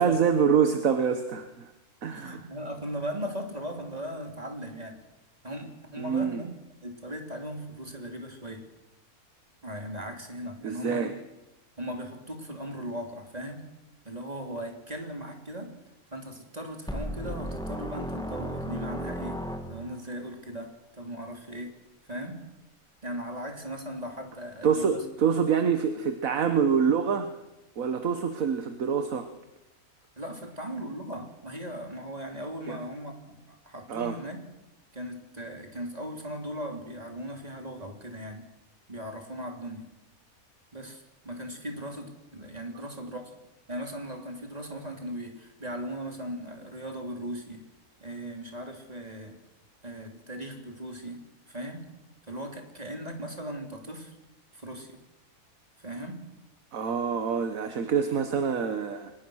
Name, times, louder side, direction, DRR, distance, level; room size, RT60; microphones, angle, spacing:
voice 1, 0.0-1.7 2.0-2.4 6.0-6.4 10.6-11.1 24.6-27.3 27.8-29.3 32.7-32.8 33.9-34.2 56.7-59.1, right 7 dB, 65° right, 8 dB, 1.6 m, -26 dB
voice 2, 2.0-5.0 5.4-6.5 6.8-8.7 9.6-11.1 11.8-13.7 14.0-15.7 16.1-19.4 19.7-21.8 22.1-22.4 23.0-25.0 30.2-34.4 34.9-38.5 38.9-39.9 40.7-43.2 43.7-47.6 48.0-49.4 49.8-51.8 52.3-54.2 54.5-55.0 55.8-56.2, equal, 25° right, 3 dB, 3.2 m, -38 dB
sound 1, 16.9-20.1, equal, 5° left, 1.7 m, -35 dB
23.5 x 20.5 x 6.4 m, 0.95 s
omnidirectional pair, 1.6 m